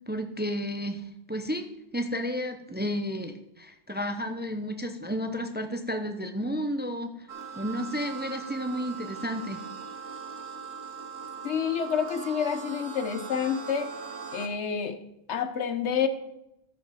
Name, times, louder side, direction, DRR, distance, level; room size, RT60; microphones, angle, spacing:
voice 1, 0.1-1.0 1.3-7.1 7.6-9.6, equal, 10° right, 7 dB, 0.6 m, -32 dB
sound 1, 7.3-14.5, right 6 dB, 75° right, 1.3 m, -40 dB
voice 2, 11.4-13.9 14.3-15.0 15.3-16.1, left 7 dB, 85° left, 10 dB, 1.1 m, -28 dB
13.5 x 5.4 x 4.8 m, 0.86 s
omnidirectional pair, 1.1 m